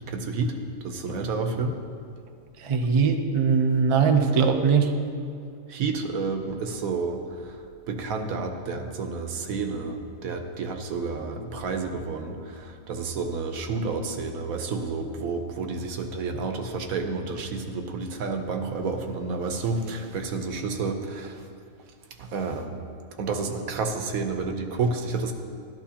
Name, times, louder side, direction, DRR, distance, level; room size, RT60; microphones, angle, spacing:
voice 1, 0.1-0.6 0.8-1.8 5.7-7.6 7.9-21.4 22.2-22.8 23.2-25.3, right 4 dB, 75° right, 5 dB, 1.2 m, -30 dB
voice 2, 2.6-4.9, right 5 dB, 50° right, 4 dB, 0.3 m, -21 dB
12.0 x 12.0 x 2.9 m, 2.3 s
omnidirectional pair, 1.5 m